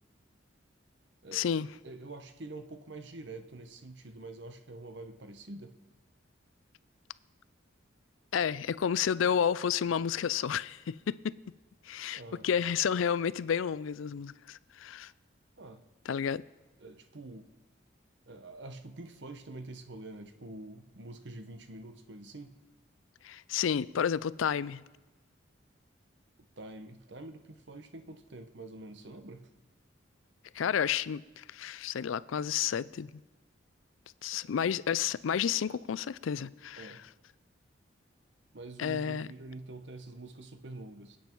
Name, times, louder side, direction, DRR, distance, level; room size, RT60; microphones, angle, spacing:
voice 1, 1.3-1.7 8.3-11.2 11.9-15.1 16.1-16.4 23.2-24.8 30.5-33.1 34.2-36.9 38.8-39.3, left 8 dB, 80° left, 0.4 m, -31 dB
voice 2, 1.8-5.8 12.1-12.5 15.6-15.8 16.8-17.5 18.3-22.5 26.6-29.5 34.4-34.5 36.8-37.0 38.5-41.2, right 2 dB, 60° right, 1.0 m, -46 dB
25.5 x 8.7 x 4.6 m
head